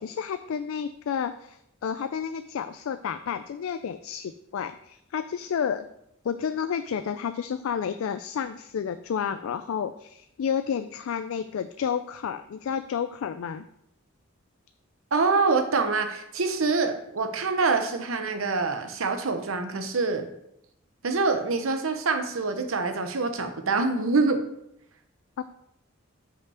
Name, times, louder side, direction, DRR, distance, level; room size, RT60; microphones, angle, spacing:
voice 1, 0.0-5.9 6.2-13.7 25.4-25.5, left 7 dB, 85° left, 11 dB, 0.3 m, -31 dB
voice 2, 15.1-20.3 21.0-24.4, right 4 dB, 80° right, 7 dB, 0.9 m, -25 dB
5.7 x 5.6 x 4.8 m, 0.79 s
head